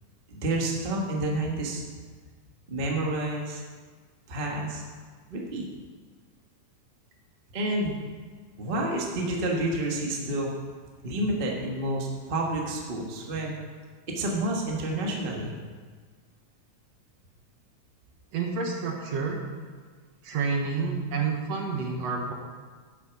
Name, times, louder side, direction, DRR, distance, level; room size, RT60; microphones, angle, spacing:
voice 1, 0.3-1.8 2.7-3.6 4.3-4.8 5.3-5.7 7.5-7.9 8.6-10.5 11.0-13.5 14.1-15.6, right 1 dB, 45° right, -2 dB, 0.7 m, -29 dB
voice 2, 18.3-19.4 20.2-22.3, right 4 dB, 60° right, 1 dB, 2.1 m, -29 dB
8.7 x 8.5 x 5.9 m, 1.5 s
omnidirectional pair, 3.7 m